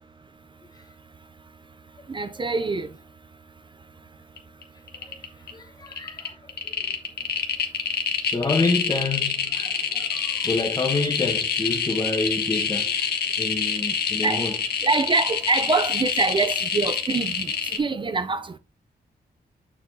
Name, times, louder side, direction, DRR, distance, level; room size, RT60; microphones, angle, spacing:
voice 1, 2.1-2.9 14.2-14.5 14.8-18.6, right 3 dB, 30° right, 0.5 m, -25 dB
sound 1, 4.4-4.6 4.9-5.5 5.9-17.8, left 6 dB, 75° left, 1.5 m, -26 dB
voice 2, 5.5-6.4 8.2-12.9 13.4-14.6, left 3 dB, 25° left, 1.2 m, -28 dB
7.2 x 6.8 x 2.7 m
wide cardioid pair, 130°, 17 cm